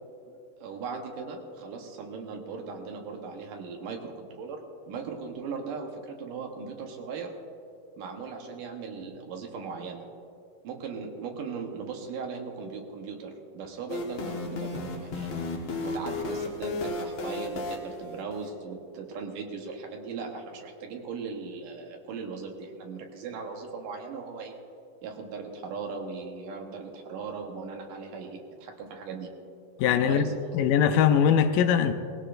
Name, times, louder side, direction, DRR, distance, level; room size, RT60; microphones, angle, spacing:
voice 1, 0.3-7.3 8.0-10.0 10.6-24.6 25.0-29.3 30.0-30.3, right 5 dB, 75° right, 2 dB, 2.7 m, -38 dB
sound 1, 13.9-18.5, left 2 dB, 55° left, 2.2 m, -34 dB
voice 2, 29.8-30.2 30.5-31.9, left 8 dB, 80° left, 9 dB, 2.3 m, -21 dB
19.5 x 17.0 x 2.6 m, 2.5 s
omnidirectional pair, 4.0 m